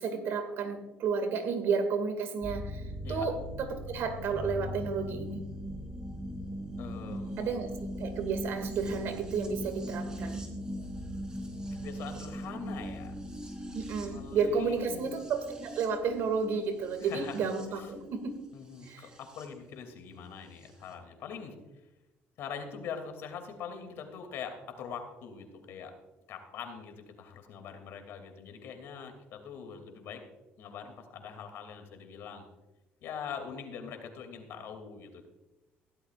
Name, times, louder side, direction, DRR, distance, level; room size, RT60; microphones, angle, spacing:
voice 1, 0.0-5.4 7.4-7.7 8.0-10.4 13.7-18.4 18.8-19.1, right 5 dB, 65° right, 7 dB, 2.1 m, -32 dB
sound 1, 2.4-19.5 20.6-20.7, equal, 20° right, 3.3 m, -40 dB
voice 2, 6.8-7.5 11.7-13.1 14.1-15.1 17.0-17.4 17.8-17.9 18.5-21.6 22.4-25.9 26.3-30.2 30.6-32.5 33.0-35.3, left 6 dB, 65° left, 6 dB, 2.6 m, -43 dB
16.0 x 13.0 x 2.5 m, 1.0 s
cardioid pair, 115°, 4 cm